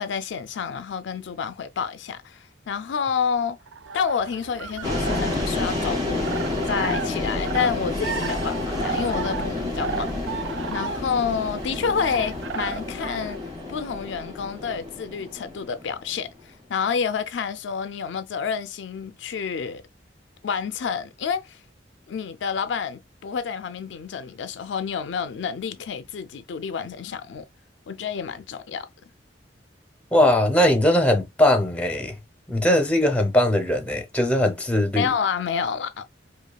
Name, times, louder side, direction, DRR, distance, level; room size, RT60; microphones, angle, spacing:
voice 1, 0.0-3.6 3.9-6.2 6.7-13.4 13.7-19.8 20.4-21.6 22.1-27.5 27.9-28.9 35.0-36.1, left 6 dB, 70° left, 0.4 m, -29 dB
sound 1, 3.7-13.4, right 5 dB, 80° right, 0.4 m, -34 dB
sound 2, 4.8-16.3, left 2 dB, 20° right, 1.9 m, -29 dB
voice 2, 30.1-32.2 32.5-35.1, left 1 dB, 5° left, 0.8 m, -20 dB
5.1 x 2.3 x 2.3 m
head